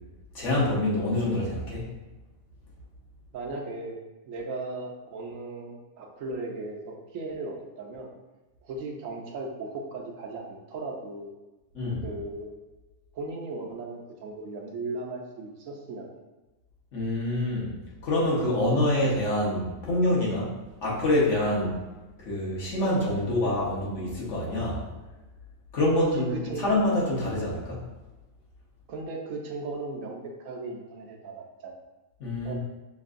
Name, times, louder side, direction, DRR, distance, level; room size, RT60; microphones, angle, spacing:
voice 1, 0.3-1.9 11.7-12.0 16.9-17.7 18.0-20.5 20.8-21.7 22.2-24.8 25.7-27.8 32.2-32.5, left 1 dB, 60° left, -5 dB, 1.5 m, -26 dB
voice 2, 3.3-4.0 4.3-8.1 8.7-11.3 12.0-12.5 13.1-16.1 25.9-26.7 28.9-31.7 32.4-32.5, right 2 dB, 75° right, 1 dB, 1.0 m, -37 dB
5.9 x 2.6 x 2.5 m, 1.1 s
omnidirectional pair, 1.4 m